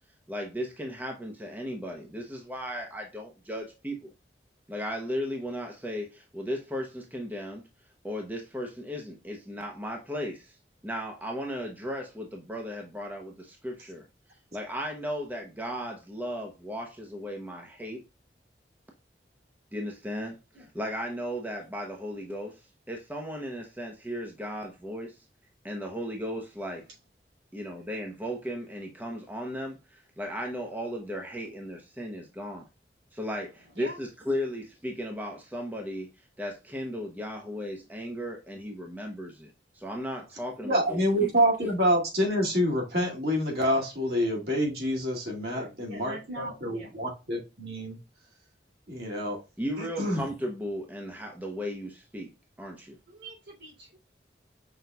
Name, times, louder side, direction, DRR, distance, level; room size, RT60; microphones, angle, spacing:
voice 1, 0.3-4.1 4.7-7.6 8.0-10.6 10.8-14.0 14.5-18.0 19.7-25.1 25.6-26.8 27.5-32.7 33.1-36.1 36.4-41.3 49.6-52.3 52.6-53.0, equal, 10° right, 0.8 m, -36 dB
voice 2, 40.6-48.0 48.9-49.4 49.8-50.2, equal, 65° right, 2.1 m, -27 dB
voice 3, 45.4-47.0 53.1-54.0, right 1 dB, 85° right, 3.0 m, -43 dB
5.8 x 4.0 x 2.2 m
head